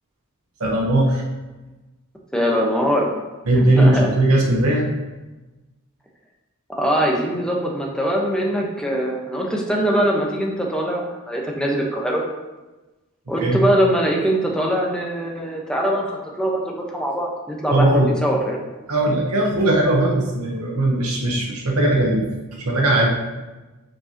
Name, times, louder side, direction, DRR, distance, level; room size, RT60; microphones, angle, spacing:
voice 1, 0.6-1.2 3.5-4.9 13.4-13.6 17.7-18.1 18.9-22.3 22.7-23.1, right 1 dB, 80° right, -3 dB, 1.0 m, -18 dB
voice 2, 2.3-3.1 3.5-4.1 6.7-12.2 13.3-18.6, equal, 5° left, -1 dB, 0.9 m, -22 dB
7.2 x 5.4 x 2.8 m, 1.1 s
head